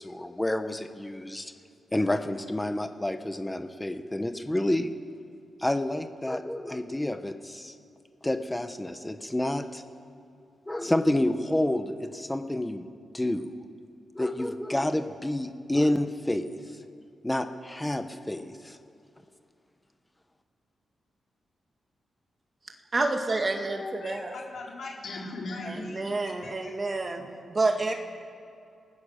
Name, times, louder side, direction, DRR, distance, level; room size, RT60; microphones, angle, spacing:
voice 1, 0.0-1.5 1.9-4.9 5.6-7.7 8.2-9.8 10.7-12.9 13.1-13.5 14.1-16.5 17.2-18.8, left 1 dB, 10° left, 8 dB, 1.0 m, -29 dB
voice 2, 22.9-24.3 25.6-27.2 27.5-27.9, right 3 dB, 25° right, 3 dB, 2.0 m, -28 dB
voice 3, 23.7-26.2 26.4-27.3 27.6-27.7, left 2 dB, 55° left, -2 dB, 4.1 m, -39 dB
29.5 x 18.5 x 6.6 m, 2.6 s
wide cardioid pair, 165°, 0 cm